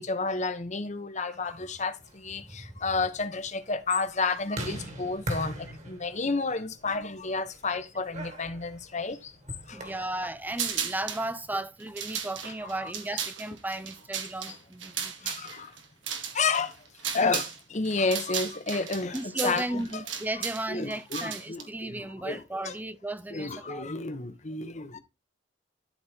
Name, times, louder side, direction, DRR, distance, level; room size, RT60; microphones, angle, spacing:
voice 1, 0.0-9.3 9.7-9.9 15.2-15.7 16.3-16.7 17.1-20.0 20.7-22.7 23.3-25.0, left 4 dB, 40° left, 1.0 m, -31 dB
sound 1, 1.9-11.0, right 1 dB, 40° right, 1.9 m, -42 dB
voice 2, 9.7-15.3 19.1-23.9, right 1 dB, 10° right, 0.4 m, -35 dB
sound 2, 10.5-11.3 11.8-17.6 17.8-21.6, right 8 dB, 80° right, 1.9 m, -35 dB
12.5 x 4.2 x 3.5 m
head